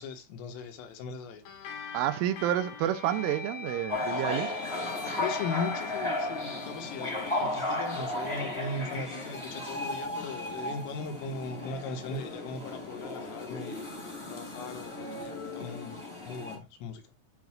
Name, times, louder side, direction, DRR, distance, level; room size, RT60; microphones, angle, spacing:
voice 1, 0.0-1.4 5.0-13.9 14.2-16.0 16.3-17.0, left 4 dB, 85° left, 4.0 m, -38 dB
sound 1, 1.5-10.3, left 7 dB, 65° left, 4.2 m, -47 dB
sound 2, 1.7-2.1 2.6-8.8, left 5 dB, 25° right, 0.7 m, -44 dB
voice 2, 1.9-4.6, right 12 dB, 85° right, 3.2 m, -29 dB
sound 3, 3.9-16.6, left 1 dB, 40° left, 0.4 m, -35 dB
13.0 x 4.6 x 2.4 m
omnidirectional pair, 5.6 m